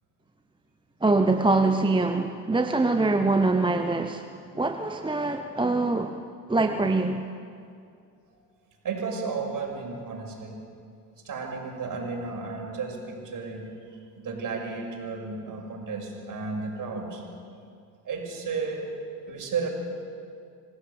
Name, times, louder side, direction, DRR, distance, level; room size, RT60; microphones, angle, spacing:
voice 1, 1.0-4.3 4.5-6.2 6.5-7.2, right 3 dB, 10° right, 7 dB, 1.0 m, -24 dB
voice 2, 8.8-10.6 11.2-17.2 18.0-18.9 19.3-19.7, right 4 dB, 40° right, 2 dB, 6.4 m, -33 dB
27.0 x 17.5 x 7.1 m, 2.4 s
hypercardioid pair, 65°, 47 cm